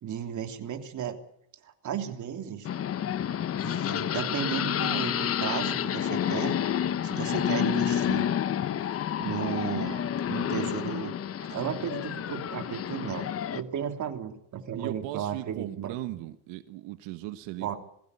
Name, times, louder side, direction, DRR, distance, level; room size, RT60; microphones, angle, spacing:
voice 1, 0.0-1.2 1.6-2.7 3.6-6.6 7.0-8.3 9.2-11.1 11.5-16.2 17.6-17.8, right 8 dB, 45° right, 5 dB, 3.1 m, -34 dB
sound 1, 2.7-13.6, left 9 dB, 35° left, 0.9 m, -29 dB
voice 2, 14.7-17.7, right 17 dB, 85° right, 10 dB, 1.4 m, -38 dB
21.0 x 16.0 x 9.8 m, 0.74 s
cardioid pair, 145°, 43 cm